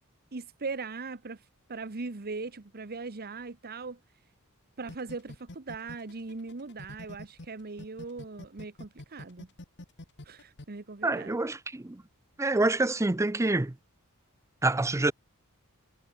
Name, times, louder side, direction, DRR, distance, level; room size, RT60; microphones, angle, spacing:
voice 1, 0.3-1.4 1.7-4.0 4.8-9.5 10.3-11.4, right 4 dB, 45° right, 1.0 m, -39 dB
sound 1, 4.9-7.5 7.8-10.6, left 1 dB, 55° left, 1.7 m, -45 dB
voice 2, 11.0-12.0 12.4-13.7 14.6-15.1, right 2 dB, 15° right, 0.5 m, -27 dB
head